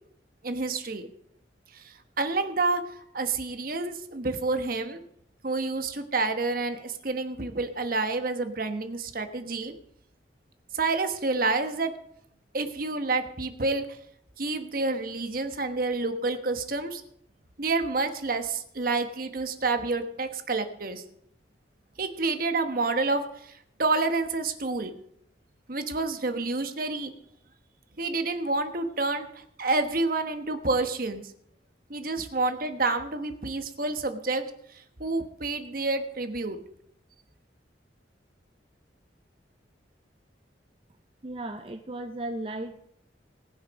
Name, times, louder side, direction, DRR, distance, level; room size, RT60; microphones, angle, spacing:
voice 1, 0.4-1.1 1.7-5.0 5.4-9.7 10.7-11.9 12.5-13.9 14.4-17.0 17.6-21.0 22.0-23.5 23.8-24.9 25.7-27.1 28.0-29.3 29.6-31.2 31.9-34.4 35.0-36.6, right 3 dB, 50° right, 8 dB, 1.2 m, -28 dB
voice 2, 41.2-42.9, right 1 dB, 30° right, 6 dB, 0.6 m, -35 dB
19.0 x 7.3 x 5.2 m, 0.71 s
head